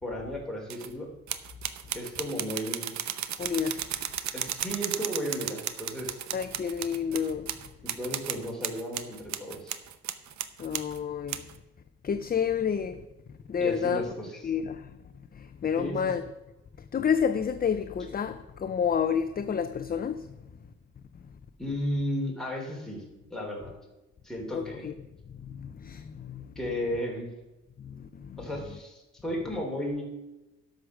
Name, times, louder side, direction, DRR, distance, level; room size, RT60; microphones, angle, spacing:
voice 1, 0.0-1.1 1.9-2.9 4.3-6.2 7.8-9.8 13.6-14.3 15.8-16.1 21.6-23.0 23.3-23.7 24.2-24.8 26.6-27.3 28.4-30.0, equal, ahead, 3.4 m, -34 dB
sound 1, 0.7-0.9 1.3-11.0 11.3-11.5, right 10 dB, 65° right, 0.8 m, -34 dB
voice 2, 3.4-3.9 6.3-7.5 10.6-11.4 12.0-13.0 13.5-14.0 14.4-14.9 15.3-16.2 16.9-20.3 24.5-24.9 25.4-26.5 27.8-28.4, left 7 dB, 30° left, 0.6 m, -29 dB
11.0 x 6.5 x 6.3 m
cardioid pair, 90°, 30 cm